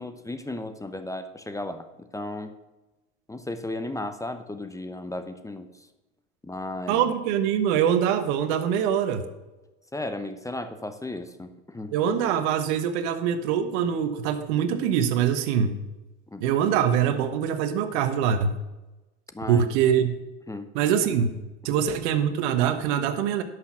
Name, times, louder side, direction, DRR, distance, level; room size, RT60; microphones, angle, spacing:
voice 1, 0.0-1.9 2.1-2.5 3.3-5.7 6.4-7.1 9.9-11.9 16.3-16.5 19.3-19.7 20.5-20.7, left 2 dB, 10° left, 9 dB, 0.9 m, -34 dB
voice 2, 6.9-9.2 11.9-15.8 16.4-18.5 19.5-20.1 20.7-21.3 21.6-23.4, right 8 dB, 65° right, 8 dB, 1.3 m, -23 dB
11.5 x 6.4 x 6.2 m, 1.1 s
hypercardioid pair, 85°, 36 cm